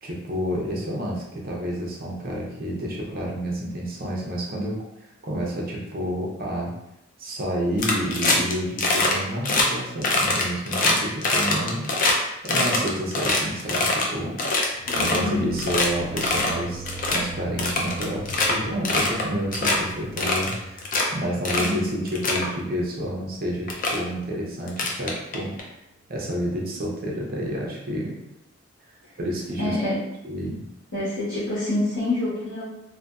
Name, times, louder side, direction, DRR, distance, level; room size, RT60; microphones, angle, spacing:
voice 1, 0.0-4.8 5.2-6.7 7.2-11.9 12.4-14.3 15.0-16.8 17.1-20.9 21.1-25.5 26.1-28.1 29.2-29.8 30.2-30.6, equal, 45° right, -3 dB, 0.6 m, -29 dB
sound 1, 7.8-8.5 8.8-9.1 9.4-9.7 10.0-12.1 12.5-14.1 14.4-15.3 15.6-15.9 16.2-16.5 16.9-17.2 17.6-18.5 18.9-19.2 19.5-19.8 20.2-21.0 21.5-21.7 22.1-22.5 23.3-23.4 23.7-24.0 24.7-25.6, left 2 dB, 45° left, 0.4 m, -23 dB
sound 2, 14.8-23.6, right 1 dB, 20° right, 1.0 m, -40 dB
voice 2, 14.9-15.5 21.6-21.8 29.6-30.0 30.9-32.6, left 1 dB, 80° left, -12 dB, 1.1 m, -27 dB
2.6 x 2.6 x 2.3 m, 0.88 s
head